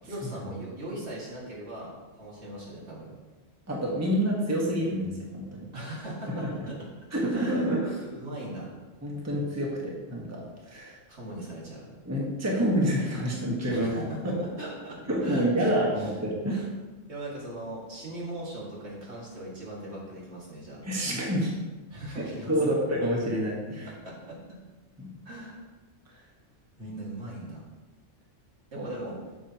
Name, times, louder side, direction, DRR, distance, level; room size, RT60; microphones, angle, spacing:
voice 1, 0.0-3.1 5.7-6.9 7.3-7.7 8.0-8.7 11.1-11.9 13.7-16.1 17.1-20.8 21.9-22.9 24.0-24.6 25.2-25.7 26.8-27.7 28.7-29.2, right 1 dB, 70° right, -5 dB, 2.4 m, -39 dB
voice 2, 3.7-5.7 6.3-6.5 7.1-8.0 9.0-11.0 12.0-14.4 15.1-16.7 20.8-21.5 22.5-23.9 25.0-25.2 28.8-28.9, equal, 15° right, -3 dB, 1.3 m, -28 dB
9.7 x 6.9 x 2.9 m, 1.2 s
omnidirectional pair, 1.2 m